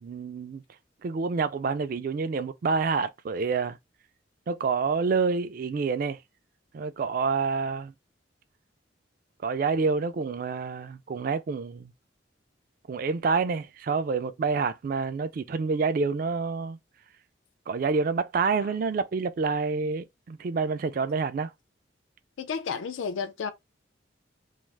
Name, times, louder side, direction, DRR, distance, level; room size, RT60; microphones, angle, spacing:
voice 1, 0.0-0.6 1.0-3.8 4.5-6.2 6.7-7.9 9.4-11.9 12.9-16.8 17.7-21.5, right 4 dB, 45° right, 0.3 m, -28 dB
voice 2, 22.4-23.5, left 6 dB, 80° left, 0.4 m, -32 dB
2.4 x 2.3 x 3.2 m
head